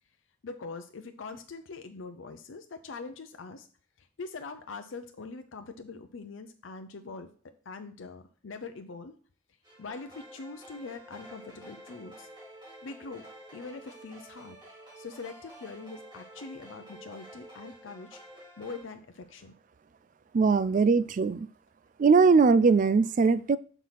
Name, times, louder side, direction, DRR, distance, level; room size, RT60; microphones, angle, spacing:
voice 1, 0.4-3.7 4.0-9.2 9.8-12.3 12.8-14.6 15.0-18.2 18.6-19.5, left 4 dB, 80° left, 7 dB, 0.6 m, -43 dB
sound 1, 9.6-18.8, right 1 dB, 20° right, 3.1 m, -50 dB
voice 2, 20.3-21.5 22.0-23.6, right 4 dB, 40° right, 16 dB, 0.3 m, -21 dB
5.9 x 4.6 x 5.6 m, 0.43 s
head